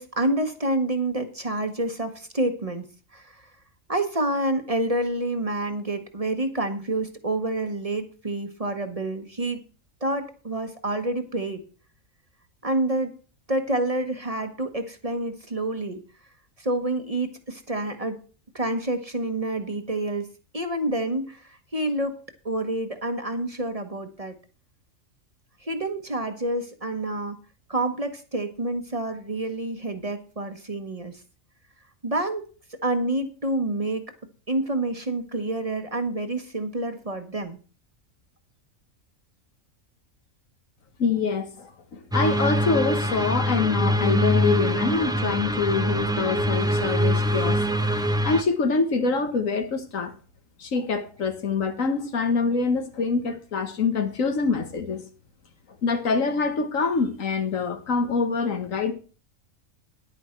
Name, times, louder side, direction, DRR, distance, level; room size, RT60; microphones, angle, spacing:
voice 1, 0.0-2.8 3.1-3.5 3.9-9.6 10.0-11.6 12.6-13.1 13.5-16.0 16.6-18.2 18.5-20.3 20.5-22.2 22.4-24.3 25.6-27.4 27.7-31.2 32.0-32.4 32.8-34.0 34.5-37.6, right 1 dB, 30° right, 1.2 m, -28 dB
voice 2, 41.0-47.6 48.2-50.1 50.6-55.1 55.8-58.9, left 4 dB, 90° left, 1.8 m, -25 dB
sound 1, 42.1-48.4, equal, 5° right, 0.5 m, -24 dB
10.0 x 9.5 x 4.4 m
omnidirectional pair, 1.3 m